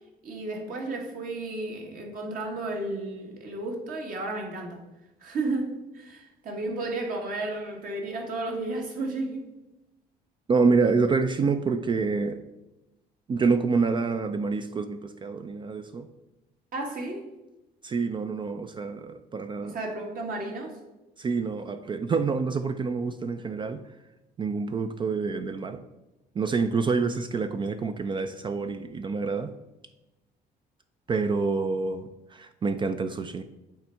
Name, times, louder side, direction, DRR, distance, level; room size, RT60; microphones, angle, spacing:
voice 1, 0.2-4.8 5.2-9.5 16.7-17.3 19.6-20.8, right 2 dB, 55° right, 1 dB, 1.6 m, -33 dB
voice 2, 10.5-12.4 13.3-16.1 17.8-19.7 21.2-23.8 24.4-25.8 26.4-29.5 31.1-33.4, right 4 dB, 30° right, 9 dB, 0.4 m, -27 dB
8.6 x 3.5 x 4.4 m, 0.97 s
cardioid pair, 110°, 17 cm